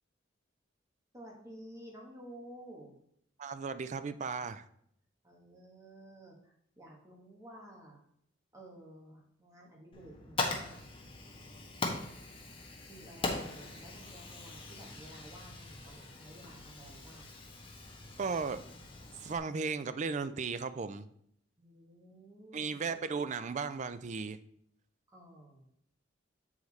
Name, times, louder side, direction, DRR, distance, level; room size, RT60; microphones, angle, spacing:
voice 1, 1.1-2.9 5.2-8.0 8.5-10.8 12.8-17.4 21.6-22.7 25.1-25.7, right 1 dB, 15° right, -2 dB, 1.4 m, -53 dB
voice 2, 3.4-4.6 18.2-18.6 19.2-21.1 22.5-24.4, right 5 dB, 40° right, 12 dB, 0.4 m, -35 dB
Fire, 9.9-19.4, left 3 dB, 30° left, 1.2 m, -41 dB
7.7 x 4.9 x 4.1 m, 0.69 s
head